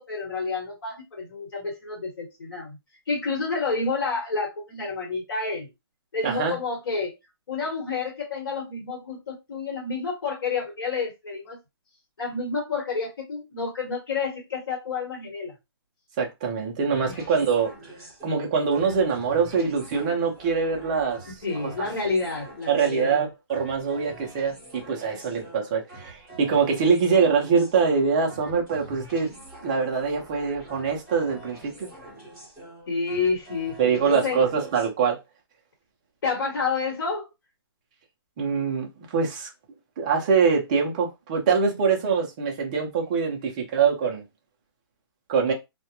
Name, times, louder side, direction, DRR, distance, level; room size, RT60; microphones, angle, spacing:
voice 1, 0.0-2.8 3.1-5.7 6.1-7.1 7.5-11.6 12.2-15.5 17.1-17.2 21.4-23.2 32.9-34.4 36.2-37.3, left 4 dB, 60° left, 1.2 m, -29 dB
voice 2, 6.2-6.6 16.2-17.7 18.2-21.2 22.7-29.3 29.6-31.9 33.8-35.2 38.4-39.5 40.0-44.2 45.3-45.5, right 5 dB, 15° right, 0.4 m, -24 dB
sound 1, 16.9-34.9, right 1 dB, 5° left, 0.9 m, -45 dB
2.1 x 2.1 x 2.8 m
hypercardioid pair, 170°, 13 cm